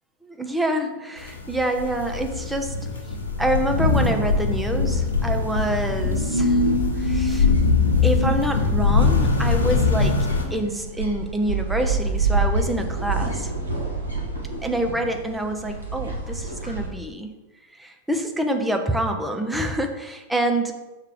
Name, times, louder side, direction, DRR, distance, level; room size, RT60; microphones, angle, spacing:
voice 1, 0.4-2.9 3.4-6.6 7.0-7.5 8.0-13.5 14.6-17.3 17.8-20.7, right 1 dB, 5° right, 4 dB, 0.9 m, -26 dB
sound 1, 1.2-10.4, left 4 dB, 75° left, 1.2 m, -22 dB
sound 2, 3.6-16.9, right 3 dB, 80° right, 1.7 m, -29 dB
6.6 x 4.7 x 4.9 m, 1.1 s
figure-of-eight pair, 90°, 0 cm